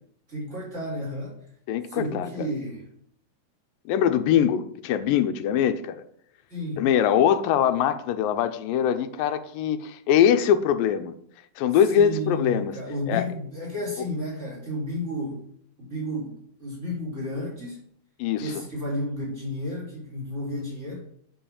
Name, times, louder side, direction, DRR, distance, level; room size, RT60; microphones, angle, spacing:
voice 1, 0.3-1.4 1.9-2.9 6.5-6.8 11.9-15.5 15.8-17.8 18.4-21.0, equal, 20° right, 4.4 m, -32 dB
voice 2, 1.7-2.5 3.9-6.0 6.8-11.1 11.6-12.7 13.1-13.3 18.2-18.6, left 9 dB, 90° left, 2.5 m, -22 dB
9.1 x 5.6 x 7.0 m
omnidirectional pair, 3.9 m